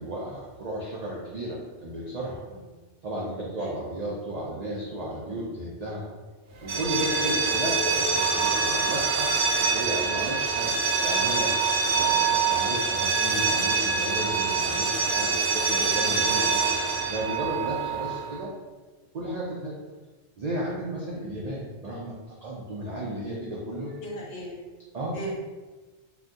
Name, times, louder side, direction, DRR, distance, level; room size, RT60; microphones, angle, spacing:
voice 1, 0.0-2.4 3.0-6.0 6.6-9.3 9.6-10.7 11.0-11.6 11.9-16.6 17.1-18.5 19.1-19.8 20.4-22.1 22.4-24.0 24.9-25.2, right 1 dB, 55° right, -5 dB, 0.4 m, -34 dB
sound 1, 6.6-18.3, right 5 dB, 80° right, 0.9 m, -25 dB
voice 2, 24.0-24.5 25.1-25.4, right 1 dB, 75° left, -3 dB, 1.1 m, -37 dB
2.6 x 2.2 x 3.4 m, 1.3 s
omnidirectional pair, 1.2 m